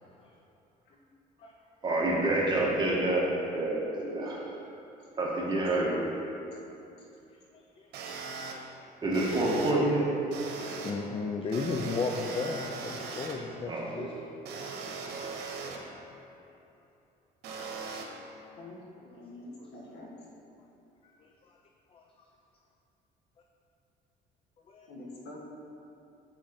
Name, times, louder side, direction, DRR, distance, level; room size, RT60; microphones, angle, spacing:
voice 1, 1.8-3.3 3.5-4.4 5.2-6.1 9.0-10.1 13.6-14.2, right 2 dB, 25° right, -5 dB, 1.7 m, -28 dB
sound 1, 7.9-8.5 9.1-9.7 10.3-10.9 11.5-13.4 14.5-15.8 17.4-18.0, right 4 dB, 80° right, 1.0 m, -39 dB
voice 2, 10.8-14.3 21.9-22.0 24.7-24.9, left 4 dB, 35° left, 2 dB, 0.5 m, -33 dB
voice 3, 19.1-20.1 24.9-25.4, left 2 dB, 80° left, -3 dB, 1.5 m, -45 dB
7.2 x 6.2 x 4.2 m, 2.8 s
cardioid pair, 110°, 17 cm